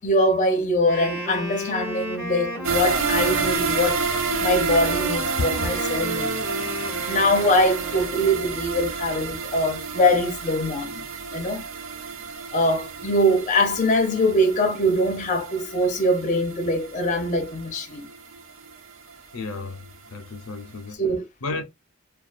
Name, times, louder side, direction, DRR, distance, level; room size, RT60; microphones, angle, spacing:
voice 1, 0.0-4.0 4.4-6.4 7.0-11.1 11.3-11.6 12.5-18.1 21.0-21.3, left 1 dB, 35° left, 0.6 m, -23 dB
Wind instrument woodwind instrument, 0.8-8.5, equal, 15° right, 0.8 m, -32 dB
sound 1, 2.6-19.7 20.1-20.2 20.6-20.7, right 5 dB, 65° right, 0.5 m, -30 dB
voice 2, 19.3-21.0 21.4-21.6, left 3 dB, 85° left, 0.6 m, -33 dB
2.4 x 2.3 x 2.4 m
head